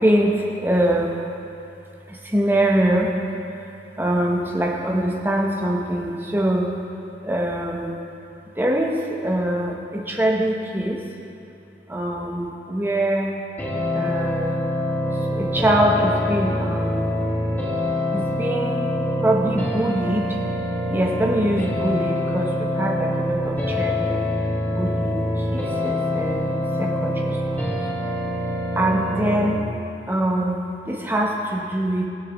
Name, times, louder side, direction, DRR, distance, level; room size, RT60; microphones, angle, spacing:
voice 1, 0.0-1.1 2.1-3.1 4.0-6.7 7.2-8.0 8.6-11.0 11.9-13.4 13.9-14.6 15.3-17.2 18.1-18.8 19.2-20.4 20.9-24.3 24.7-25.2 25.5-27.8 28.7-29.6 30.1-32.1, right 1 dB, 10° right, -1 dB, 1.1 m, -23 dB
sound 1, 13.6-29.6, left 1 dB, 10° left, 1.2 m, -25 dB
20.0 x 6.9 x 3.6 m, 2.8 s
head